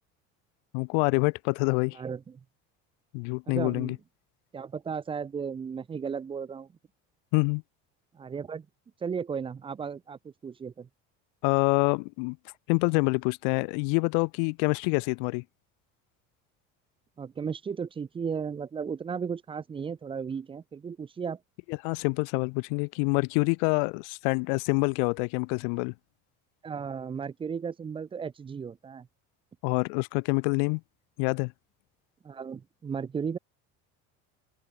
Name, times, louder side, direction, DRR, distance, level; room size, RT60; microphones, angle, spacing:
voice 1, 0.7-2.0 3.1-4.0 7.3-7.6 11.4-12.4 12.7-15.4 21.7-25.9 29.6-30.8 31.2-31.5, left 40 dB or more, 90° left, 1.5 m, -26 dB
voice 2, 1.9-2.4 3.5-3.9 4.5-6.7 8.1-8.7 9.0-10.9 17.2-21.4 26.6-29.1 32.2-33.4, right 6 dB, 15° right, 1.4 m, -35 dB
cardioid pair, 180°, 29 cm